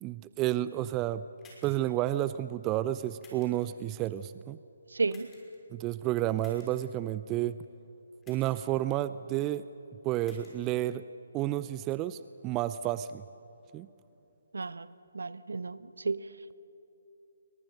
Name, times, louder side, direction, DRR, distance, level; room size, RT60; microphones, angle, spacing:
voice 1, 0.0-1.2 1.6-4.6 5.7-7.6 8.3-9.6 10.0-11.0 11.3-13.2 13.7-13.9, right 14 dB, 20° right, 14 dB, 0.5 m, -31 dB
sound 1, 1.4-1.9 3.2-3.7 5.1-5.6 6.4-6.7 8.2-8.7 10.1-10.5, left 2 dB, 10° left, 5.9 m, -56 dB
voice 2, 4.9-5.3 14.5-14.9 15.1-16.2, right 3 dB, 65° right, 15 dB, 1.0 m, -32 dB
29.5 x 24.0 x 6.6 m, 2.9 s
figure-of-eight pair, 140°, 0 cm